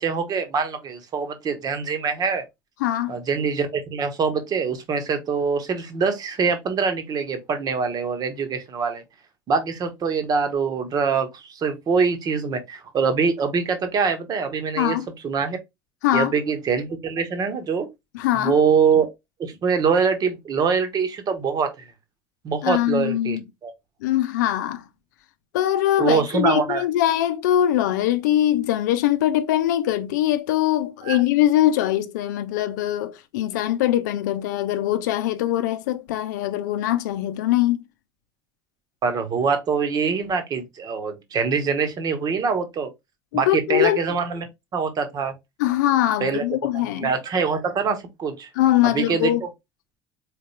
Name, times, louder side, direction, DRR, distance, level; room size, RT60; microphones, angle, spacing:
voice 1, 0.0-2.4 3.1-9.0 9.5-15.0 15.2-15.6 16.1-17.9 18.4-19.1 19.4-21.9 22.4-23.7 26.0-26.8 31.0-31.2 39.0-42.9 43.3-44.5 44.7-45.3 46.2-46.4 46.7-48.5 48.8-49.5, right 5 dB, 40° right, 1.2 m, -24 dB
voice 2, 2.8-3.2 14.8-15.1 16.0-16.3 18.1-18.6 22.6-23.4 24.0-24.8 25.5-37.8 43.3-44.0 45.6-47.1 48.6-49.4, left 13 dB, 65° left, 0.6 m, -22 dB
4.3 x 3.3 x 3.2 m
figure-of-eight pair, 65°, 10 cm